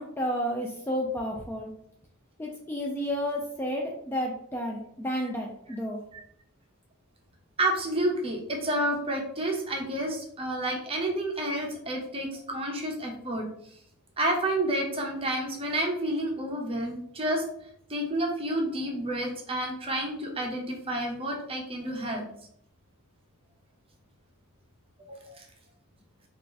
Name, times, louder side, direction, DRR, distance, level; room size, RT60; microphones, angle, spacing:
voice 1, 0.0-1.7 2.4-6.0, equal, 10° left, -1 dB, 0.3 m, -31 dB
voice 2, 7.6-13.4 14.2-17.4 17.9-22.2 25.1-25.4, right 1 dB, 25° right, 0 dB, 0.7 m, -30 dB
2.8 x 2.5 x 3.7 m, 0.69 s
head